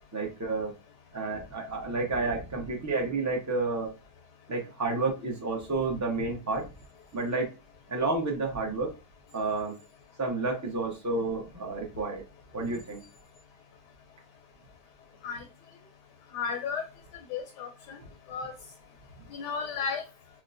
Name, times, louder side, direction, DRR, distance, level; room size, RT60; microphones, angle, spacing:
voice 1, 0.1-0.7 1.1-3.9 4.5-6.7 7.1-7.5 7.9-8.9 9.3-9.7 10.2-12.2 12.5-13.0, right 3 dB, 25° right, -1 dB, 0.4 m, -30 dB
voice 2, 16.3-16.8 17.3-18.0 18.3-18.5 19.3-20.0, left 6 dB, 80° left, 2 dB, 1.3 m, -33 dB
4.4 x 2.1 x 2.6 m, 0.28 s
omnidirectional pair, 1.8 m